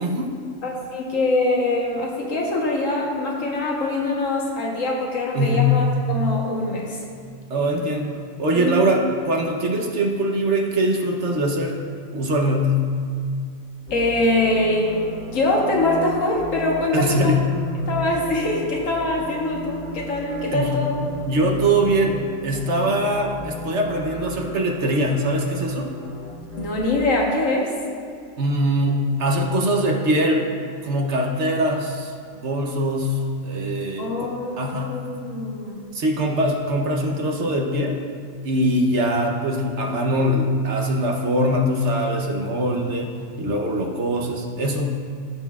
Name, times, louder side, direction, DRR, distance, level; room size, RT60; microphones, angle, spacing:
voice 1, 0.0-0.3 5.3-5.8 7.5-8.1 8.4-11.8 12.1-12.9 16.9-17.5 20.5-20.8 21.2-22.2 22.4-25.9 28.4-30.5 30.8-32.1 32.4-34.9 35.9-38.0 38.4-44.9, equal, 60° right, 1 dB, 1.1 m, -22 dB
voice 2, 0.6-7.0 8.5-8.8 13.9-15.0 15.3-17.2 17.9-20.9 26.6-27.7 34.0-35.8, left 2 dB, 70° left, -2 dB, 1.5 m, -23 dB
sound 1, 13.9-26.8, left 1 dB, 10° left, 0.7 m, -36 dB
15.0 x 6.2 x 2.4 m, 2.1 s
omnidirectional pair, 1.5 m